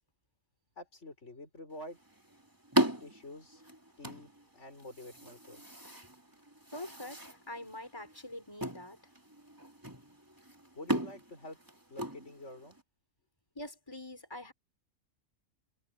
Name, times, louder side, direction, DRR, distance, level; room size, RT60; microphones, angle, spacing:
voice 1, 0.8-2.0 3.0-3.6 4.0-5.8 10.8-11.6 11.9-12.8, left 2 dB, 65° left, 6.1 m, -48 dB
sound 1, 1.7-12.8, right 1 dB, 15° right, 3.1 m, -38 dB
voice 2, 6.7-9.0 13.6-14.5, left 1 dB, 20° left, 5.4 m, -44 dB
omnidirectional pair, 1.3 m